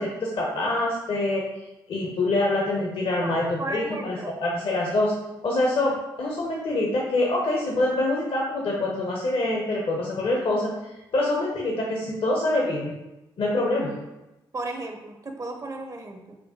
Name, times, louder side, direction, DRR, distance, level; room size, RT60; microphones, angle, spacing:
voice 1, 0.0-1.4 1.9-5.2 5.4-10.7 11.1-12.9 13.4-14.0, left 2 dB, 50° left, -2 dB, 0.6 m, -25 dB
voice 2, 3.2-4.3 14.5-16.4, right 2 dB, 30° right, 4 dB, 0.5 m, -34 dB
4.4 x 2.1 x 2.8 m, 0.97 s
hypercardioid pair, 40°, 12 cm